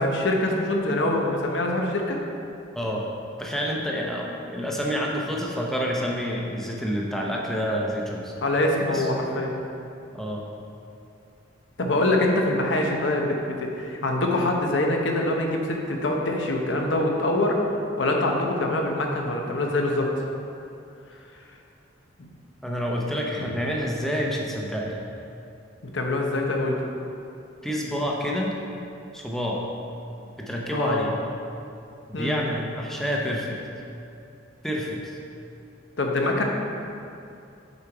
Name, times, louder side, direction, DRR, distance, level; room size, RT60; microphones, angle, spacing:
voice 1, 0.0-2.2 8.4-9.5 11.8-17.6 18.0-20.1 22.2-22.3 23.4-23.5 25.9-26.8 30.7-31.0 32.1-32.4 36.0-36.4, left 1 dB, 65° left, 1 dB, 0.8 m, -24 dB
voice 2, 2.7-3.0 3.4-8.3 8.9-9.1 10.1-10.4 22.6-25.0 27.6-28.5 29.1-29.6 30.4-31.1 32.1-33.6 34.6-35.2, equal, ahead, -2 dB, 0.7 m, -28 dB
6.8 x 4.5 x 4.9 m, 2.7 s
head